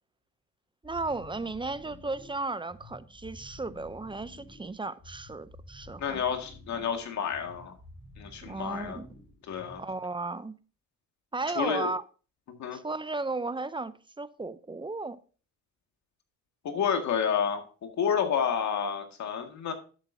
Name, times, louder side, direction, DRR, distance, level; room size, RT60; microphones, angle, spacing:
sound 1, 0.8-10.1, left 1 dB, 20° left, 4.3 m, -51 dB
voice 1, 0.8-6.2 8.4-9.1 9.8-10.6 11.3-12.0 12.7-15.2, right 3 dB, 15° right, 0.5 m, -35 dB
voice 2, 6.0-7.7 8.2-9.0 9.5-9.8 11.6-11.9 12.6-12.8 16.6-17.6 18.0-19.7, left 7 dB, 65° left, 2.0 m, -29 dB
11.0 x 8.1 x 2.7 m
cardioid pair, 90°, 30 cm